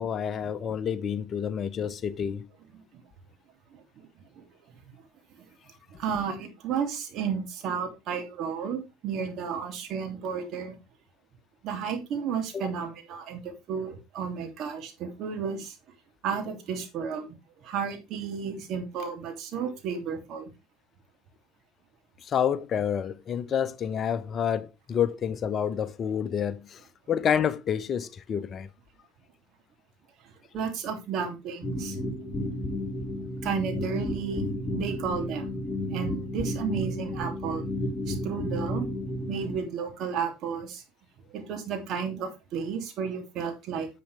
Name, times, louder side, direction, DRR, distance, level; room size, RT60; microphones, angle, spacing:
voice 1, 0.0-2.5 12.5-12.7 22.2-26.8 27.1-28.7, left 8 dB, 40° left, 0.8 m, -28 dB
voice 2, 3.7-4.1 4.4-4.5 5.4-5.5 6.0-10.8 11.6-15.7 16.2-17.3 17.6-20.5 30.5-32.0 33.4-35.5 35.9-37.7 38.1-38.9 39.3-40.8 41.3-43.9, right 6 dB, 55° right, 2.8 m, -32 dB
sound 1, 31.6-39.6, left 1 dB, 20° left, 2.8 m, -32 dB
10.0 x 7.6 x 3.4 m
hypercardioid pair, 70°, 0 cm